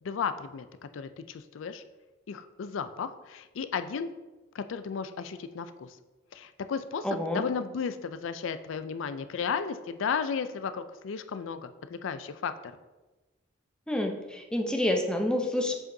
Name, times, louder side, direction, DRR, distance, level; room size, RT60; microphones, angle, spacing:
voice 1, 0.0-1.8 2.3-4.1 4.5-6.0 6.3-12.7, left 6 dB, 75° left, 11 dB, 0.4 m, -34 dB
voice 2, 7.0-7.4 13.9-15.7, left 1 dB, 5° left, 3 dB, 0.6 m, -28 dB
7.4 x 5.0 x 2.7 m, 1.2 s
head